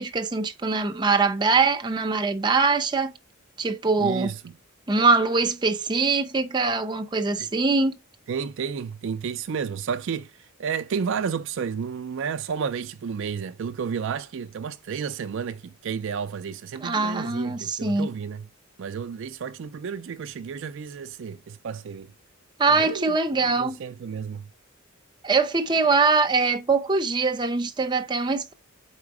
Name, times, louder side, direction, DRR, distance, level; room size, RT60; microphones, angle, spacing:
voice 1, 0.0-3.2 3.6-4.3 4.9-8.0 16.8-18.1 22.6-23.8 25.2-28.5, right 4 dB, 20° right, 0.6 m, -23 dB
voice 2, 4.0-4.5 7.4-7.5 8.3-18.5 18.8-22.1 22.7-24.5, right 6 dB, 60° right, 0.4 m, -32 dB
4.7 x 4.3 x 4.7 m
head